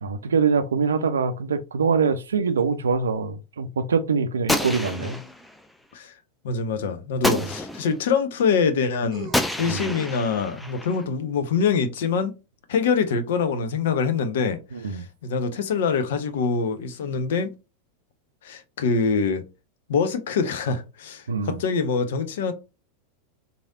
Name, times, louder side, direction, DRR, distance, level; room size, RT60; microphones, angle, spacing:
voice 1, 0.0-5.2 7.3-7.5 9.6-9.9 14.7-15.0 21.3-21.6, right 5 dB, 70° right, 0.4 m, -24 dB
sound 1, 2.6-2.7 4.7-5.6 7.5-7.6 9.1-9.8, right 4 dB, 35° right, 0.9 m, -43 dB
Gunshot gunfire, 4.5-5.6 7.2-8.0 9.3-11.0, left 1 dB, 5° left, 0.4 m, -28 dB
voice 2, 6.4-9.3 9.6-12.3 12.7-17.5 18.4-19.4 19.9-22.5, left 5 dB, 60° left, 0.5 m, -24 dB
3.1 x 2.6 x 2.6 m
figure-of-eight pair, 85°, 0 cm